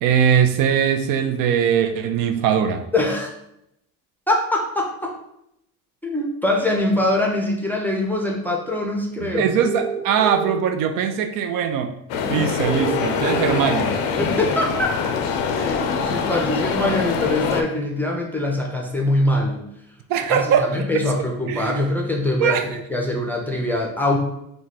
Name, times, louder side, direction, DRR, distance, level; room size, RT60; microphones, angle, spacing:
voice 1, 0.0-2.8 9.3-11.9 12.3-14.0 20.1-21.0 21.5-21.9 22.4-22.7, right 8 dB, 65° right, 7 dB, 0.5 m, -21 dB
voice 2, 2.9-3.3 4.3-5.1 6.0-9.5 12.2-12.4 14.2-14.9 15.6-19.7 20.3-24.2, left 1 dB, 5° left, -1 dB, 0.5 m, -23 dB
sound 1, 9.6-10.6 12.6-13.6, right 4 dB, 25° right, 1.0 m, -27 dB
sound 2, 12.1-17.6, left 6 dB, 90° left, 0.5 m, -24 dB
3.1 x 2.3 x 4.0 m, 0.79 s
cardioid pair, 110°, 36 cm